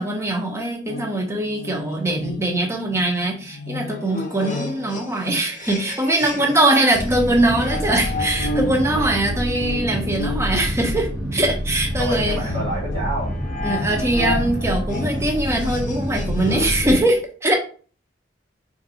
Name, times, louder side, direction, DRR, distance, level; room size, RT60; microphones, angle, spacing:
voice 1, 0.0-12.4 13.6-17.6, right 1 dB, 15° right, 2 dB, 0.7 m, -22 dB
sound 1, 0.9-6.6 6.9-16.9, left 1 dB, 45° left, 0.6 m, -32 dB
sound 2, 6.9-17.0, equal, 60° right, 0.9 m, -27 dB
voice 2, 12.0-13.6, right 1 dB, 80° right, -6 dB, 1.3 m, -29 dB
3.8 x 2.5 x 2.7 m, 0.40 s
head